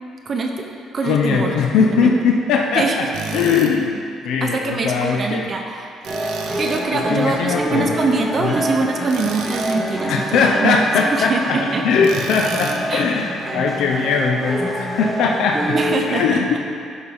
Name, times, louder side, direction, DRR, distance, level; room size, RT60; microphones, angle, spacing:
voice 1, 0.3-0.6 0.9-1.5 1.9-2.1 2.7-3.1 4.4-5.9 6.6-10.8 11.2-12.0 12.9-13.0 15.7-16.6, right 4 dB, 35° right, 2 dB, 0.7 m, -23 dB
voice 2, 1.0-4.0 4.2-5.5 6.9-7.9 8.2-8.6 10.1-11.6 11.8-15.8 16.1-16.6, left 5 dB, 75° left, 1 dB, 0.6 m, -20 dB
Tools, 3.1-3.7 6.0-6.9 9.1-9.8 12.0-12.8, right 6 dB, 90° right, 0.7 m, -32 dB
sound 1, 6.1-16.0, equal, 10° right, 1.2 m, -26 dB
12.5 x 5.5 x 3.5 m, 2.4 s
cardioid pair, 140°, 0 cm